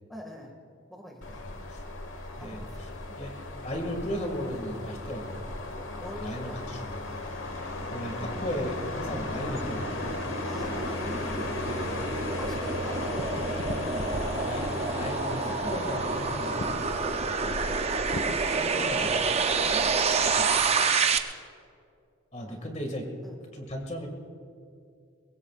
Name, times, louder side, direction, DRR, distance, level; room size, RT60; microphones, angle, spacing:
voice 1, 0.1-0.6 0.9-1.4 2.4-3.3 5.7-6.6 8.9-9.1 10.4-14.2 16.4-16.6 18.6-19.1 19.6-21.1 22.5-22.7 23.2-23.5, equal, ahead, 1 dB, 1.9 m, -46 dB
sound 1, 1.2-20.6, left 2 dB, 65° left, 1.4 m, -36 dB
voice 2, 1.4-1.8 2.4-2.6 3.2-3.3 3.6-5.5 6.1-6.9 7.5-10.2 11.7-12.0 14.4-16.6 17.2-17.8 18.5-19.5 20.5-20.6 22.3-23.1 23.5-24.1, equal, 35° left, 2 dB, 2.1 m, -36 dB
sound 2, 8.0-21.2, right 5 dB, 30° right, 0.6 m, -29 dB
22.5 x 21.0 x 2.5 m, 2.4 s
head